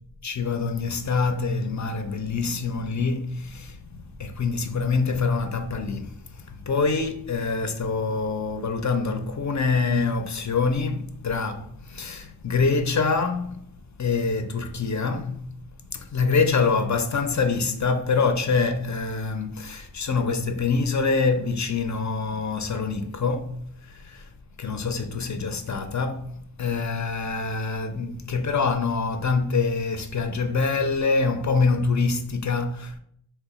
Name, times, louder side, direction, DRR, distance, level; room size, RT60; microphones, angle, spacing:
voice 1, 0.2-13.7 14.0-24.3 24.6-33.0, left 4 dB, 40° left, 0.4 m, -25 dB
2.9 x 2.1 x 4.1 m
wide cardioid pair, 55°, 47 cm